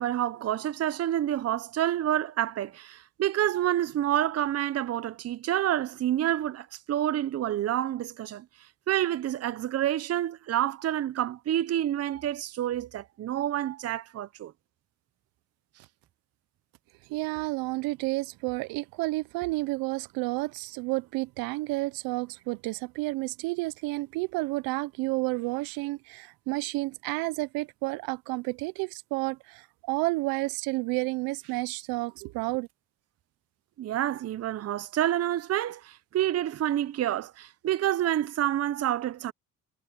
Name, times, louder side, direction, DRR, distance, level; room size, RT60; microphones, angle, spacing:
voice 1, 0.0-8.5 8.9-14.5 33.8-39.3, right 12 dB, 45° right, 0.7 m, -28 dB
voice 2, 17.1-32.7, right 22 dB, 75° right, 0.8 m, -31 dB
supercardioid pair, 65°, 36 cm